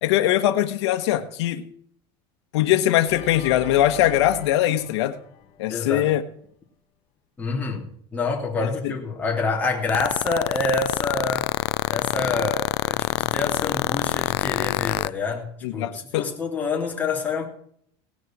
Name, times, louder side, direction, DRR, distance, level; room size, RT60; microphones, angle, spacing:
voice 1, 0.0-1.6 2.5-5.2 5.6-6.2 8.6-8.9 15.6-16.3, left 13 dB, 90° left, 9 dB, 1.2 m, -21 dB
Organ, 3.0-6.2, left 8 dB, 55° left, 3.0 m, -40 dB
voice 2, 5.7-6.1 7.4-11.5 11.9-17.5, left 3 dB, 10° left, -1 dB, 2.8 m, -27 dB
sound 1, 9.9-15.1, left 21 dB, 75° left, 0.5 m, -24 dB
18.0 x 6.4 x 7.4 m, 0.64 s
cardioid pair, 160°, 14 cm